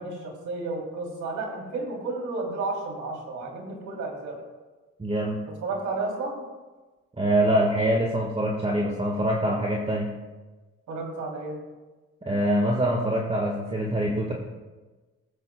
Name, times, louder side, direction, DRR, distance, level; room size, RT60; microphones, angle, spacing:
voice 1, 0.0-4.4 5.6-6.4 10.9-11.6, right 3 dB, 70° right, -1 dB, 3.1 m, -32 dB
voice 2, 5.0-5.4 7.2-10.1 12.2-14.3, right 1 dB, 20° right, -1 dB, 1.6 m, -24 dB
21.0 x 7.9 x 2.3 m, 1.2 s
cardioid pair, 90°, 30 cm